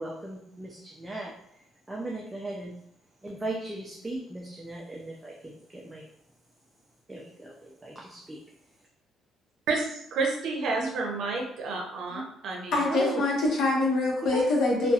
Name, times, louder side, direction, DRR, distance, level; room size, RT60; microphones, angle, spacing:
voice 1, 0.0-2.7 3.2-6.0 7.1-8.4 10.8-10.9 12.9-13.2 14.3-14.4 14.8-14.9, right 2 dB, 15° right, -3 dB, 0.4 m, -37 dB
voice 2, 9.7-12.8, right 3 dB, 70° right, 0 dB, 0.6 m, -30 dB
voice 3, 12.7-14.9, left 2 dB, 70° left, -2 dB, 0.9 m, -24 dB
2.7 x 2.3 x 2.3 m, 0.72 s
cardioid pair, 110°, 0 cm